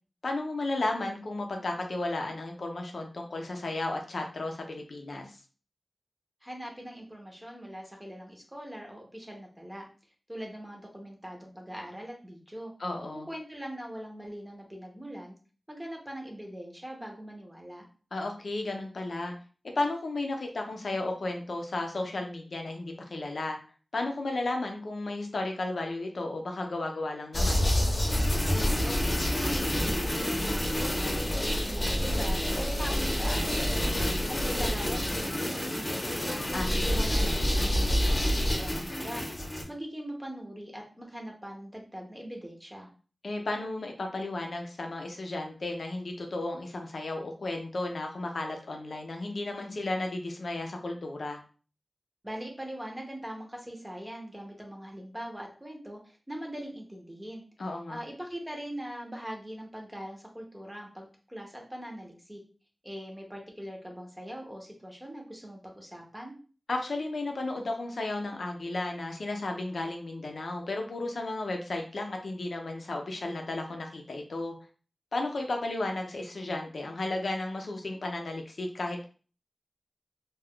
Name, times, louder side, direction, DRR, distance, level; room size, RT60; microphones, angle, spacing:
voice 1, 0.2-5.4 12.8-13.3 18.1-19.3 19.8-23.6 23.9-27.7 36.5-37.1 43.2-51.4 57.6-58.0 66.7-74.5 75.1-79.0, left 2 dB, 80° left, 3 dB, 0.6 m, -34 dB
voice 2, 6.4-9.9 10.3-12.7 13.1-15.3 15.7-17.8 28.5-33.9 34.3-36.4 36.9-39.2 39.7-42.9 52.2-57.4 57.9-62.4 62.8-66.3, equal, 10° right, 0 dB, 0.7 m, -41 dB
sound 1, 27.3-39.6, equal, 40° left, 0.8 m, -28 dB
2.3 x 2.3 x 3.6 m, 0.38 s
wide cardioid pair, 85°, 0 cm